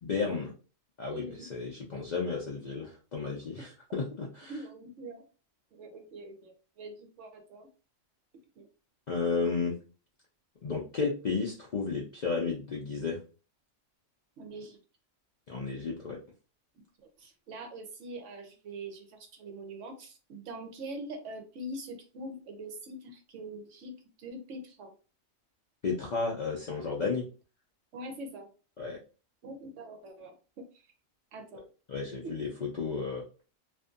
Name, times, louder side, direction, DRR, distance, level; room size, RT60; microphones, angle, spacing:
voice 1, 0.0-0.5 1.0-4.5 9.1-9.8 10.6-13.2 15.5-16.2 25.8-27.3 28.8-29.0 31.9-33.2, left 4 dB, 80° left, -2 dB, 0.4 m, -33 dB
voice 2, 1.1-1.5 3.6-3.7 4.5-5.2 5.7-7.7 8.6-8.7 14.4-14.8 17.2-24.9 27.9-28.5 29.4-30.6 31.3-31.6 32.2-32.5, right 1 dB, 70° right, 4 dB, 0.9 m, -43 dB
2.5 x 2.5 x 2.4 m, 0.35 s
omnidirectional pair, 1.4 m